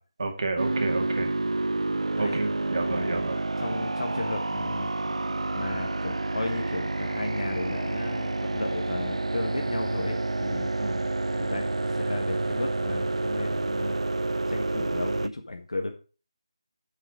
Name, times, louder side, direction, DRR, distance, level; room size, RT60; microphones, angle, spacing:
voice 1, 0.2-1.3 2.2-3.4 10.8-11.0, right 3 dB, 55° right, 5 dB, 2.0 m, -30 dB
sound 1, 0.6-15.3, right 2 dB, 85° right, 0.5 m, -29 dB
voice 2, 2.9-3.2 3.6-4.9 5.5-10.7 11.4-14.0 14.5-15.9, left 2 dB, 80° left, 3 dB, 1.6 m, -34 dB
7.3 x 7.2 x 4.9 m, 0.34 s
figure-of-eight pair, 165°, 3 cm